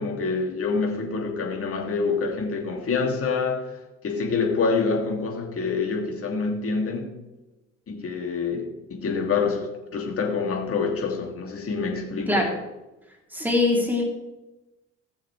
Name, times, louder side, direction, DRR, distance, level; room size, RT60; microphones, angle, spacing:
voice 1, 0.0-3.6 4.0-7.1 7.9-12.4, left 4 dB, 35° left, 1 dB, 2.9 m, -26 dB
voice 2, 13.3-14.0, left 2 dB, 5° right, -1 dB, 3.5 m, -22 dB
19.0 x 7.0 x 3.5 m, 1.0 s
figure-of-eight pair, 50°, 37 cm